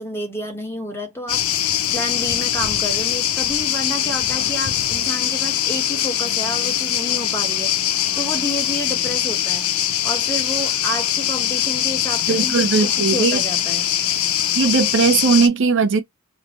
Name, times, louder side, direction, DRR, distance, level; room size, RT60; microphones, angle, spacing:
voice 1, 0.0-13.9, equal, 10° left, 0.9 m, -30 dB
sound 1, 1.3-15.5, left 11 dB, 75° left, 0.6 m, -22 dB
voice 2, 12.3-13.4 14.5-16.0, right 5 dB, 60° right, 0.5 m, -18 dB
3.2 x 2.0 x 4.0 m
head